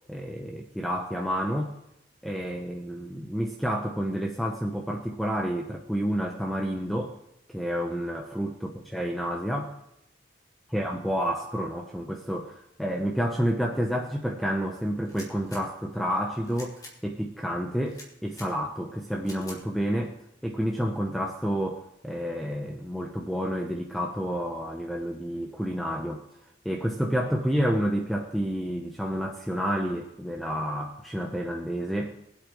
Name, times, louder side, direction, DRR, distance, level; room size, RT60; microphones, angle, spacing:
voice 1, 0.1-1.7 2.2-7.2 7.5-9.8 10.7-20.2 20.4-26.2 26.6-32.1, equal, ahead, 1 dB, 0.8 m, -29 dB
sound 1, 15.0-15.6 16.4-16.9 17.9-18.5 19.2-19.6, left 1 dB, 20° left, 2.7 m, -46 dB
23.0 x 8.3 x 3.2 m, 0.86 s
head